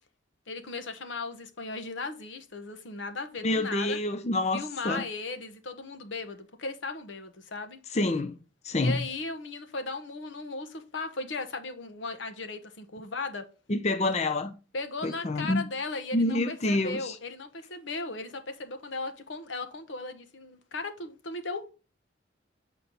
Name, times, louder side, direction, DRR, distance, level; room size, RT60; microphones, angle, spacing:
voice 1, 0.5-4.0 4.5-7.8 8.8-13.5 14.7-21.7, left 3 dB, 85° left, 1.1 m, -37 dB
voice 2, 3.4-5.0 7.9-8.4 8.6-9.1 13.7-14.5 15.0-15.7 16.1-17.2, left 2 dB, 35° left, 0.5 m, -27 dB
8.3 x 4.5 x 3.9 m
head